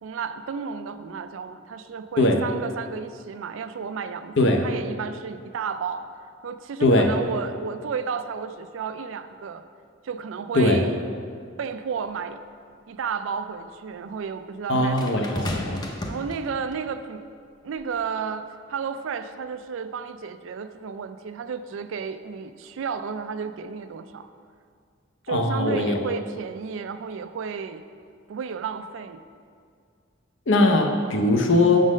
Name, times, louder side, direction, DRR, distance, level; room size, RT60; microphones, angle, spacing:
voice 1, 0.0-6.1 6.4-9.7 10.0-11.0 11.6-12.4 12.9-15.6 16.1-17.3 17.6-24.3 25.2-27.8 28.3-29.2, right 6 dB, 70° right, 11 dB, 0.3 m, -32 dB
sound 1, 12.1-12.2 15.0-16.9 17.8-18.0, left 1 dB, 20° left, 0.5 m, -33 dB
voice 2, 14.7-15.8 25.3-26.0 30.5-31.8, left 2 dB, 65° left, 3 dB, 0.7 m, -20 dB
6.3 x 3.9 x 6.2 m, 2.2 s
head